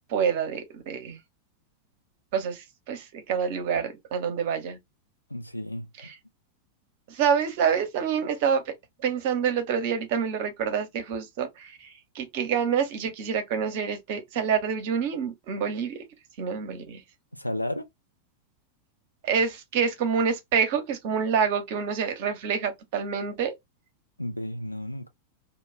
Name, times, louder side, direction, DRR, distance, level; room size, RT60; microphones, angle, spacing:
voice 1, 0.1-1.2 2.3-4.8 6.0-6.1 7.1-8.7 9.0-16.0 16.4-17.0 19.2-23.5, right 7 dB, 50° right, 0.7 m, -27 dB
voice 2, 5.3-5.9 17.3-17.9 24.2-25.1, left 1 dB, 85° left, 0.4 m, -32 dB
2.2 x 2.0 x 3.1 m
figure-of-eight pair, 90°, 0 cm